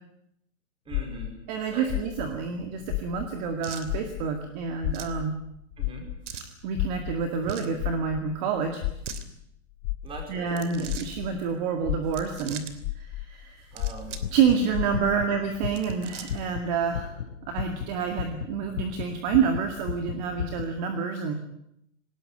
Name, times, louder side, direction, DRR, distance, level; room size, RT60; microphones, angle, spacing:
voice 1, 0.8-1.3 1.7-1.9 5.8-6.1 10.0-10.5 13.7-14.1 15.1-15.2, right 2 dB, 15° right, 3 dB, 5.2 m, -41 dB
sound 1, 0.9-3.6 3.8-11.4 11.8-15.3, left 16 dB, 30° left, 1.4 m, -33 dB
voice 2, 1.5-5.3 6.6-8.8 10.3-12.7 13.0-13.7 14.3-17.2 17.5-21.3, right 6 dB, 35° right, 6 dB, 2.1 m, -28 dB
sound 2, 3.6-3.9 4.9-5.2 6.2-6.5 7.4-7.8 8.9-9.3 10.5-11.2 12.0-12.7 13.6-14.3 14.6-14.7 15.6-16.5, right 7 dB, 70° right, 3.1 m, -41 dB
sound 3, 14.0-20.6, left 8 dB, 75° left, 3.9 m, -36 dB
20.0 x 19.0 x 8.9 m, 0.77 s
hypercardioid pair, 160°, 38 cm